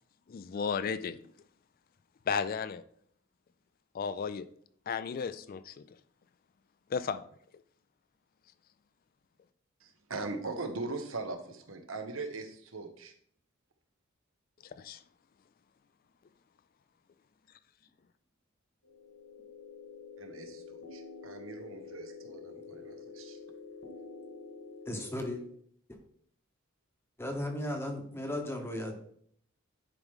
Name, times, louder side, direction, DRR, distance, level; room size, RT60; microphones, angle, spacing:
voice 1, 0.3-1.2 2.3-2.8 3.9-4.5 4.9-5.8 6.9-7.2 14.6-15.0, left 6 dB, 45° left, 0.3 m, -34 dB
voice 2, 9.8-13.1 20.2-20.6 20.9-23.4, right 3 dB, 75° right, 1.1 m, -40 dB
sound 1, 18.8-25.4, left 4 dB, 75° left, 1.7 m, -48 dB
voice 3, 24.9-25.4 27.2-29.0, left 1 dB, 10° left, 0.9 m, -35 dB
10.5 x 4.7 x 3.6 m
head